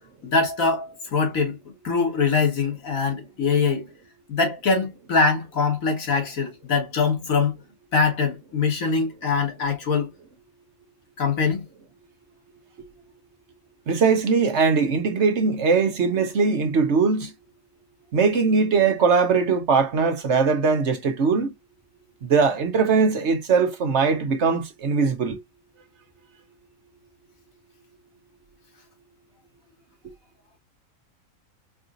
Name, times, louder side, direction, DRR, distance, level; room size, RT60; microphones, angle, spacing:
voice 1, 0.2-1.6 1.8-3.9 4.3-7.5 7.9-10.1 11.2-11.6, left 4 dB, 80° left, 2.0 m, -23 dB
voice 2, 13.9-17.3 18.1-21.5 22.2-25.4, right 5 dB, 60° right, 1.2 m, -21 dB
4.7 x 2.7 x 2.5 m
omnidirectional pair, 1.4 m